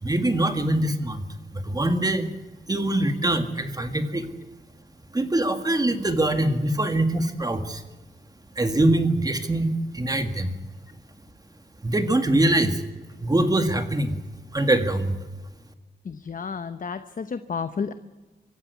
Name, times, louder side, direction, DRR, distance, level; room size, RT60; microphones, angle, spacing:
voice 1, 0.0-1.2 1.5-2.3 2.7-4.3 5.1-7.8 8.6-10.5 11.8-12.8 13.2-14.2 14.5-15.2, right 1 dB, 20° right, 7 dB, 2.0 m, -23 dB
voice 2, 16.0-17.9, left 5 dB, 50° left, 11 dB, 0.9 m, -31 dB
25.0 x 15.0 x 9.4 m, 1.2 s
wide cardioid pair, 165°, 18 cm